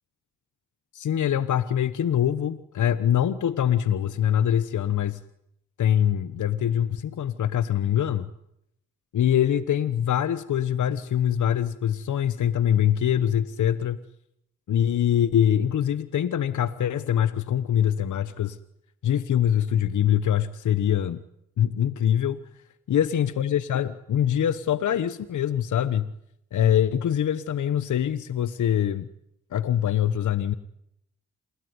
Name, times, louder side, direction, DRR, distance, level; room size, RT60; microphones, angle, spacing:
voice 1, 0.9-5.2 5.8-8.3 9.1-14.0 14.7-18.6 19.0-21.2 21.6-22.4 22.9-26.1 26.5-29.1 29.5-30.5, left 10 dB, 70° left, 14 dB, 1.2 m, -24 dB
27.5 x 21.0 x 9.7 m, 0.79 s
supercardioid pair, 55°, 31 cm